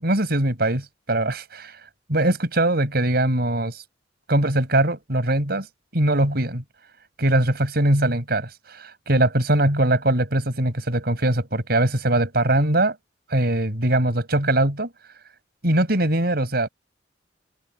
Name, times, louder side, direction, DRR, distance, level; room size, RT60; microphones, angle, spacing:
voice 1, 0.0-1.7 2.1-3.8 4.3-5.7 5.9-6.6 7.2-13.0 13.3-14.9 15.6-16.7, right 1 dB, 60° right, 6.3 m, -21 dB
open air
head